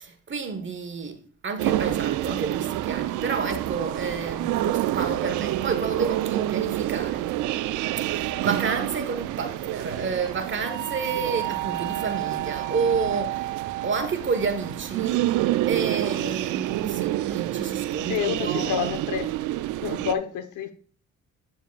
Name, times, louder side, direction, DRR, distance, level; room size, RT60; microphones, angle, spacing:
voice 1, 0.0-7.3 8.1-13.5 13.8-18.7, right 5 dB, 40° right, 1.4 m, -30 dB
sound 1, 1.6-20.1, right 15 dB, 85° right, 0.4 m, -28 dB
voice 2, 18.0-19.3 19.8-20.7, left 7 dB, 80° left, 1.1 m, -28 dB
8.6 x 7.2 x 2.5 m
cardioid pair, 90°, 30 cm